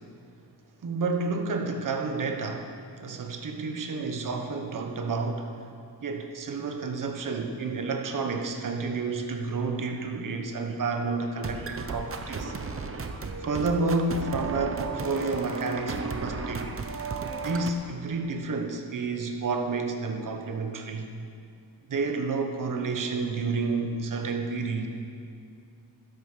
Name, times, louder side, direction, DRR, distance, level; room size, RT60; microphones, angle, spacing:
voice 1, 0.8-5.5 6.0-12.5 13.4-16.7 17.4-21.1 21.9-24.9, right 3 dB, 50° right, 4 dB, 1.2 m, -30 dB
sound 1, 10.7-10.8 11.1-17.7, right 4 dB, 35° right, 0.9 m, -34 dB
12.0 x 10.5 x 6.7 m, 2.4 s
wide cardioid pair, 175°, 41 cm